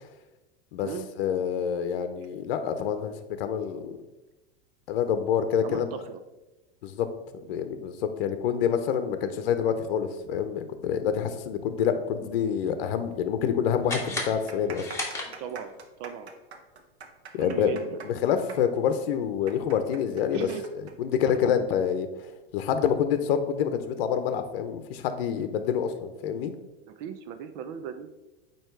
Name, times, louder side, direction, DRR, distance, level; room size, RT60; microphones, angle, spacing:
voice 1, 1.2-4.0 4.9-5.9 6.8-7.1 7.4-14.9 17.3-20.5 21.0-22.1 22.5-26.5, left 8 dB, 65° left, 9 dB, 0.8 m, -27 dB
voice 2, 5.6-6.2 9.2-9.4 15.4-15.7 16.0-16.3 17.3-18.0 20.3-20.6 26.8-28.1, right 8 dB, 50° right, 9 dB, 0.6 m, -37 dB
sound 1, 13.1-13.2 13.4-13.5 14.1-21.4 21.7-21.8 22.5-22.8, right 5 dB, 90° right, 1.0 m, -45 dB
sound 2, 13.8-15.8, left 2 dB, 10° left, 1.5 m, -35 dB
8.8 x 3.0 x 4.5 m, 1.0 s
hypercardioid pair, 110°, 31 cm